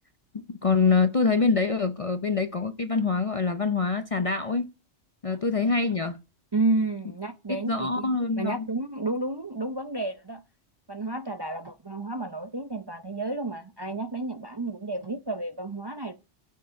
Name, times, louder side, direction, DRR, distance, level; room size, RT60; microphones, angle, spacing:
voice 1, 0.5-4.7 5.2-6.2 7.5-8.7, left 4 dB, 40° left, 0.6 m, -25 dB
voice 2, 6.5-10.4 10.9-16.1, right 2 dB, 30° right, 0.5 m, -31 dB
10.5 x 6.6 x 5.7 m
omnidirectional pair, 1.2 m